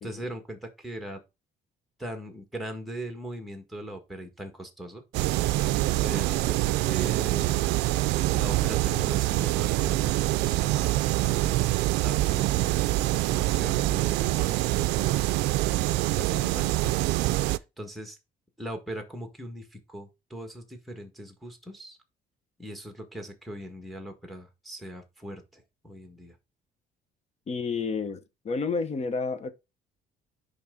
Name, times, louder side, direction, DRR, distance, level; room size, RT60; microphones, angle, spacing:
voice 1, 0.0-1.2 2.0-5.0 5.9-7.7 8.3-11.7 12.0-15.6 16.2-18.2 18.6-22.0 22.6-26.4, equal, ahead, 1.6 m, -40 dB
sound 1, 5.1-17.6, right 17 dB, 90° right, 0.4 m, -25 dB
voice 2, 27.5-29.5, left 4 dB, 40° left, 1.1 m, -30 dB
10.0 x 3.4 x 3.8 m
cardioid pair, 110°, 17 cm